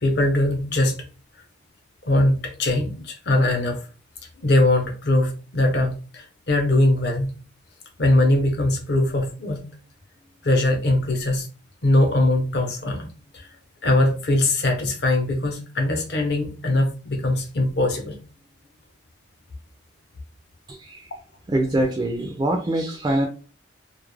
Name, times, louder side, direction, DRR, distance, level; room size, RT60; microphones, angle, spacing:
voice 1, 0.0-1.0 2.1-3.8 4.4-7.3 8.0-9.6 10.4-11.5 11.8-13.5 13.8-18.2, left 1 dB, 55° left, 3 dB, 0.7 m, -21 dB
voice 2, 20.7-21.1 21.5-23.3, right 1 dB, 20° right, 2 dB, 0.3 m, -24 dB
2.3 x 2.0 x 3.1 m, 0.35 s
head